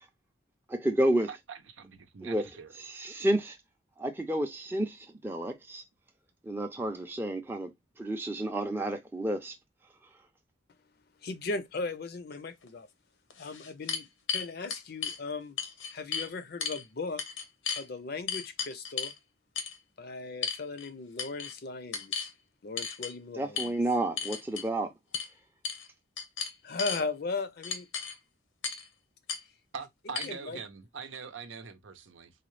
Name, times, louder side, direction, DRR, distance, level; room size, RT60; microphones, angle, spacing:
voice 1, 0.7-1.3 2.2-2.5 2.8-3.6 4.0-5.8 6.4-7.7 8.0-9.5 23.4-24.9, right 1 dB, 10° right, 0.5 m, -30 dB
voice 2, 1.3-2.7 29.7-32.3, right 5 dB, 85° right, 0.7 m, -43 dB
voice 3, 11.2-12.9 13.4-15.6 15.9-17.4 17.7-19.1 20.0-22.3 22.6-23.8 26.6-27.9 30.2-30.6, left 3 dB, 55° left, 0.5 m, -37 dB
sound 1, 12.7-12.8 13.3-15.2 15.6-16.3 16.6-16.8 17.2-17.8 18.3-19.2 19.6-19.8 20.4-20.9 21.2-21.5 21.9-22.3 22.8-23.1 23.6-23.7 24.2-24.7 25.1-25.3 25.6-25.9 26.2-27.0 27.6-28.2 28.6-28.9 29.3-29.4 30.2-30.3, left 6 dB, 85° left, 0.8 m, -34 dB
4.0 x 2.2 x 3.1 m
head